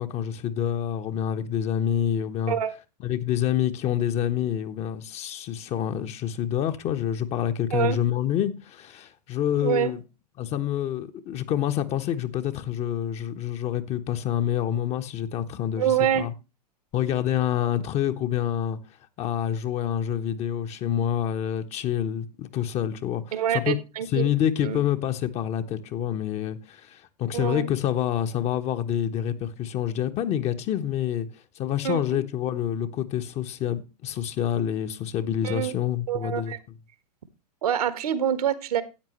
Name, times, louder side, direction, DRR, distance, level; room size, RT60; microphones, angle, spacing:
voice 1, 0.0-2.6 3.0-10.0 10.4-16.3 16.9-18.8 19.2-23.8 24.1-31.3 31.6-36.5, left 10 dB, 30° left, 1.1 m, -27 dB
voice 2, 9.6-9.9 15.8-16.3 23.3-24.3 24.6-24.8 27.3-27.7 31.8-32.2 35.4-35.7 36.1-36.6 37.6-38.8, right 10 dB, 60° right, 1.4 m, -26 dB
13.0 x 9.3 x 3.1 m
figure-of-eight pair, 100°, 21 cm